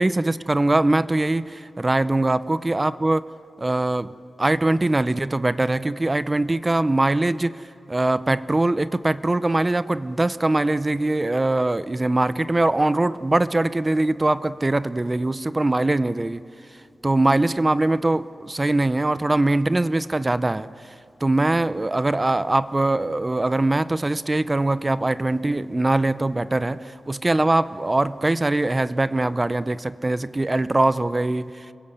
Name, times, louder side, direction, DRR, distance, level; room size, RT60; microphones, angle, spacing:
voice 1, 0.0-3.2 3.6-4.1 4.4-7.6 7.9-16.4 17.0-20.7 21.2-31.7, right 2 dB, 20° right, 14 dB, 0.6 m, -22 dB
27.0 x 22.0 x 8.1 m, 2.7 s
wide cardioid pair, 115°, 0 cm